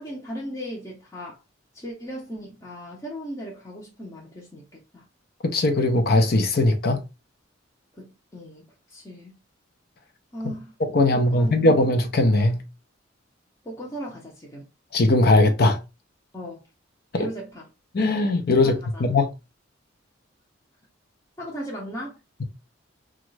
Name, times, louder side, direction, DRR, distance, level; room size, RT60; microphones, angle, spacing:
voice 1, 0.0-1.4 1.7-5.1 7.9-9.3 10.3-10.8 11.1-11.6 13.6-14.7 16.3-16.6 17.1-17.7 18.6-19.0 21.4-22.2, equal, 20° left, 0.7 m, -37 dB
voice 2, 5.4-7.0 10.9-12.6 14.9-15.8 17.1-17.3 17.9-19.3, left 2 dB, 55° left, 0.6 m, -20 dB
3.0 x 2.4 x 3.1 m
head